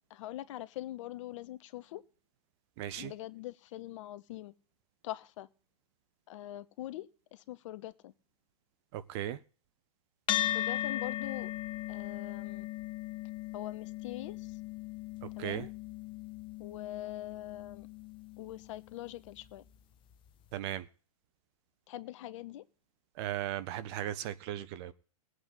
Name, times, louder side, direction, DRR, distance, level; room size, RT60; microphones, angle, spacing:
voice 1, 0.1-2.0 2.9-4.5 5.0-5.5 6.3-8.1 10.5-11.5 11.9-12.7 13.5-14.6 15.4-15.7 16.6-17.9 18.4-19.6 21.9-22.6, left 14 dB, 55° left, 14 dB, 1.1 m, -43 dB
voice 2, 2.8-3.1 8.9-9.4 15.2-15.7 20.5-20.9 23.1-24.9, right 12 dB, 45° right, 15 dB, 1.0 m, -37 dB
sound 1, 10.3-18.9, left 13 dB, 25° left, 0.9 m, -38 dB
20.0 x 8.1 x 4.0 m, 0.39 s
hypercardioid pair, 125°, 20 cm